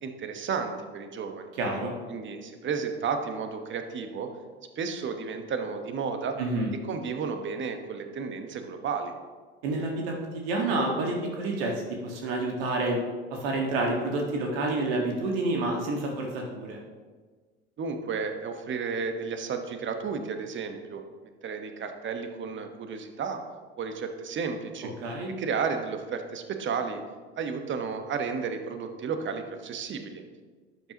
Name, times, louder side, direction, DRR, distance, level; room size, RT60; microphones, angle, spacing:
voice 1, 0.0-1.5 2.1-4.3 4.7-6.3 6.9-9.1 17.8-21.0 21.4-23.4 23.8-24.9 25.4-27.0 27.4-30.2, right 5 dB, 35° right, 6 dB, 1.2 m, -32 dB
voice 2, 1.6-1.9 6.4-6.7 9.6-11.7 12.0-13.0 13.3-16.8 25.0-25.3, right 2 dB, 70° right, 0 dB, 1.7 m, -28 dB
12.0 x 8.1 x 3.0 m, 1.4 s
hypercardioid pair, 70°, 31 cm